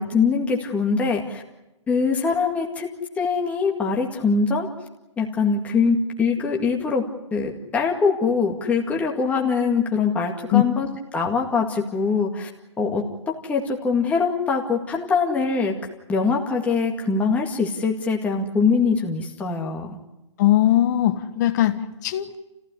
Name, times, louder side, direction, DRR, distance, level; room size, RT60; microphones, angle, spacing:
voice 1, 0.0-1.4 1.9-2.9 3.2-4.7 5.2-7.0 7.3-12.5 12.8-15.7 16.1-20.0, left 5 dB, 10° left, 0 dB, 2.1 m, -23 dB
voice 2, 20.4-22.4, left 13 dB, 35° left, 9 dB, 1.4 m, -19 dB
29.5 x 15.5 x 9.9 m, 0.96 s
hypercardioid pair, 160°, 16 cm